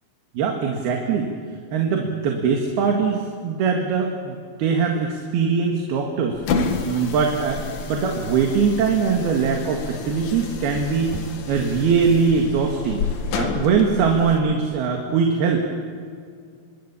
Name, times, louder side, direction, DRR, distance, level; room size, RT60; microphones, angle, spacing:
voice 1, 0.4-1.3 1.7-6.4 6.9-13.0 13.3-15.6, right 5 dB, 80° right, 1 dB, 3.9 m, -22 dB
sound 1, 6.3-14.4, left 5 dB, 70° left, 3.5 m, -30 dB
26.5 x 23.5 x 7.2 m, 2.2 s
omnidirectional pair, 4.4 m